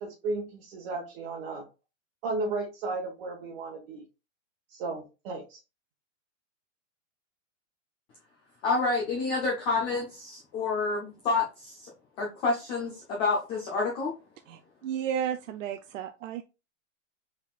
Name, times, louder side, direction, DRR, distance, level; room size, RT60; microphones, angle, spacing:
voice 1, 0.0-1.6 2.2-4.0 4.7-5.6, right 3 dB, 45° right, 1.1 m, -34 dB
voice 2, 8.6-11.9 12.2-14.1, left 3 dB, 15° left, 0.4 m, -28 dB
voice 3, 14.5-16.4, right 9 dB, 75° right, 0.6 m, -33 dB
4.8 x 3.6 x 2.3 m
hypercardioid pair, 150°, 38 cm